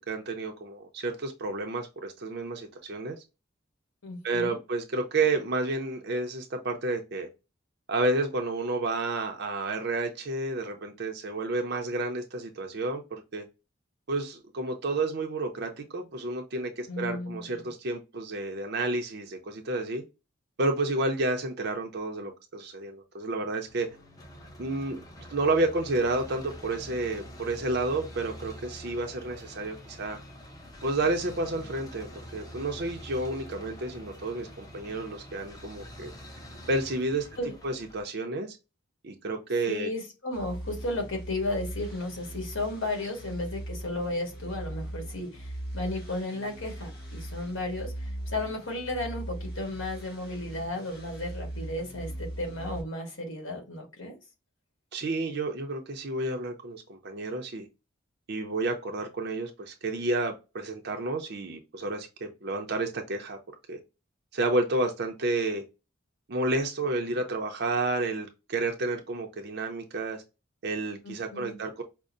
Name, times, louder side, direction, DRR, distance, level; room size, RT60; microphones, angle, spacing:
voice 1, 0.1-3.2 4.2-7.3 7.9-13.4 14.1-20.0 20.6-23.9 24.6-25.0 25.3-30.2 30.8-36.1 36.7-37.3 37.6-38.6 39.0-39.9 54.9-57.7 58.3-63.4 63.7-63.8 64.3-65.6 66.3-70.2 70.6-71.8, right 2 dB, 55° right, 0.6 m, -30 dB
voice 2, 4.0-4.6 16.9-17.7 37.4-37.5 39.7-54.2 71.0-71.6, left 2 dB, 70° left, 1.4 m, -34 dB
sound 1, 23.7-38.0, equal, 15° left, 0.6 m, -46 dB
sound 2, 40.3-52.8, right 1 dB, 50° left, 1.9 m, -40 dB
5.2 x 2.0 x 2.5 m
head